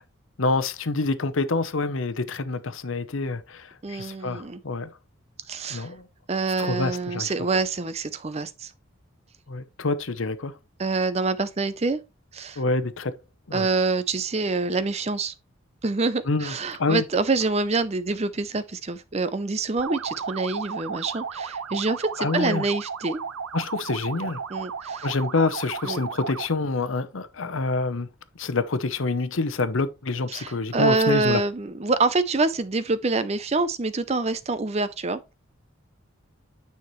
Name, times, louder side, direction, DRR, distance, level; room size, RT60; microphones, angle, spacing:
voice 1, 0.4-4.9 5.7-6.1 6.6-7.3 9.5-10.5 12.6-13.1 13.5-13.7 16.3-16.5 16.8-17.0 22.2-22.7 23.5-24.4 25.0-28.1 28.4-31.4, left 3 dB, 70° left, 0.8 m, -27 dB
voice 2, 3.8-4.6 5.5-5.9 6.3-8.7 10.8-12.0 12.3-12.6 13.5-15.3 15.8-23.2 24.5-25.1 25.8-26.0 30.3-35.3, right 3 dB, 30° right, 0.5 m, -26 dB
sound 1, 19.8-26.6, right 5 dB, 85° right, 0.6 m, -34 dB
9.5 x 5.8 x 3.1 m
head